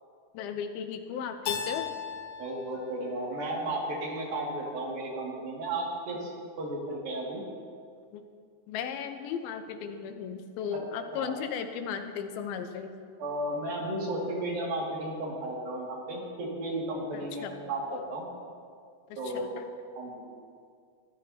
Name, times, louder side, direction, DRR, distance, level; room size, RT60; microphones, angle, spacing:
voice 1, 0.3-1.9 8.1-8.3 8.7-13.1 17.1-17.6 17.9-18.0 19.3-19.6, left 7 dB, 90° left, 6 dB, 2.8 m, -36 dB
Keyboard (musical), 1.5-4.3, left 7 dB, 75° left, 2.7 m, -38 dB
voice 2, 2.4-6.3 6.6-7.4 11.1-11.4 13.2-18.2 19.2-19.6 20.0-20.3, right 1 dB, 75° right, -3 dB, 4.2 m, -34 dB
23.5 x 13.5 x 2.9 m, 2.1 s
omnidirectional pair, 4.2 m